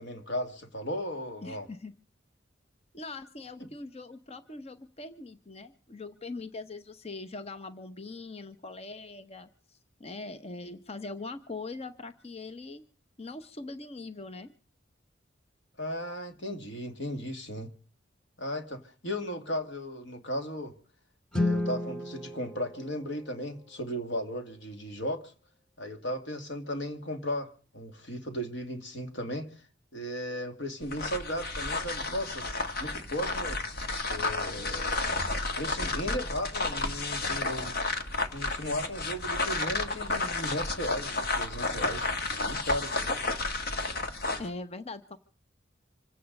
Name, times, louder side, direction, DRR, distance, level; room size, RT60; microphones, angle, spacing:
voice 1, 0.0-1.7 15.8-17.7 18.4-20.7 21.3-25.3 25.8-29.5 29.9-32.5 32.8-33.6 34.1-35.0 35.6-37.7 38.3-42.1 42.4-43.1, equal, 75° left, 2.5 m, -36 dB
voice 2, 1.4-1.9 2.9-12.8 13.2-14.5 44.4-45.2, left 3 dB, 35° left, 0.9 m, -42 dB
Guitar, 21.3-23.9, left 2 dB, 5° left, 1.3 m, -33 dB
sound 1, 30.8-44.5, left 3 dB, 55° left, 1.8 m, -32 dB
26.5 x 9.3 x 5.4 m
head